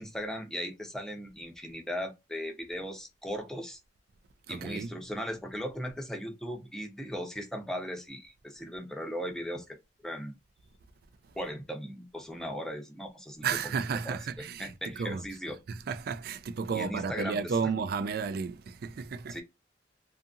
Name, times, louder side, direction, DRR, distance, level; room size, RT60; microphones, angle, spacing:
voice 1, 0.0-3.8 4.5-9.6 10.0-10.4 11.3-13.6 14.0-14.2 14.6-15.6 16.7-17.6 19.3-19.4, equal, 5° left, 0.6 m, -37 dB
voice 2, 4.5-4.9 13.4-14.7 15.0-15.2 15.7-19.4, right 5 dB, 60° right, 0.3 m, -32 dB
2.7 x 2.5 x 2.4 m
head